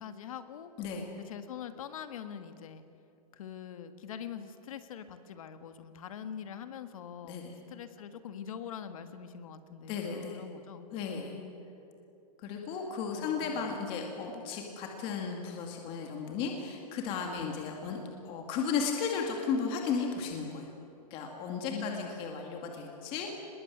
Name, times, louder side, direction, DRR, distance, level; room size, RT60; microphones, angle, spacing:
voice 1, 0.0-0.7 1.3-2.8 3.3-11.6 13.1-13.8 21.7-22.4, left 8 dB, 60° left, 10 dB, 1.7 m, -44 dB
voice 2, 9.9-10.4 10.9-11.4 12.4-18.0 18.2-20.7 21.1-23.4, left 5 dB, 25° left, 2 dB, 2.2 m, -35 dB
23.5 x 21.0 x 9.4 m, 2.7 s
supercardioid pair, 170°, 20 cm